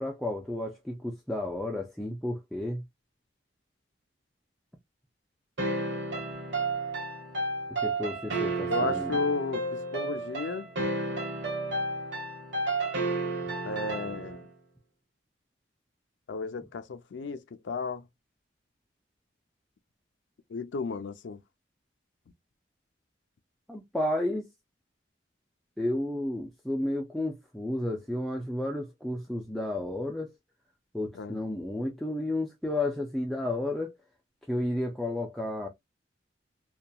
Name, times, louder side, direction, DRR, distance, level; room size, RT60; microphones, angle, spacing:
voice 1, 0.0-2.8 7.8-9.1 23.7-24.5 25.8-30.3 30.9-33.9 34.5-35.7, left 1 dB, ahead, 0.4 m, -32 dB
sound 1, 5.6-14.5, right 2 dB, 75° right, 1.0 m, -31 dB
voice 2, 8.7-10.7 13.6-14.4 16.3-18.1 20.5-21.4 31.1-31.4, left 4 dB, 85° left, 0.4 m, -34 dB
2.8 x 2.2 x 2.2 m
head